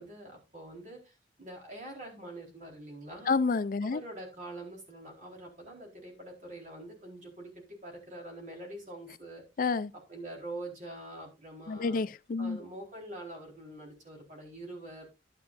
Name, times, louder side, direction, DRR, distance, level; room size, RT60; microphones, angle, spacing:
voice 1, 0.0-3.4 3.8-9.4 9.9-12.0 12.4-15.1, right 1 dB, 45° right, 4.2 m, -45 dB
voice 2, 3.3-4.0 9.6-9.9 11.7-12.6, left 4 dB, 50° left, 0.4 m, -29 dB
11.0 x 10.5 x 2.6 m
head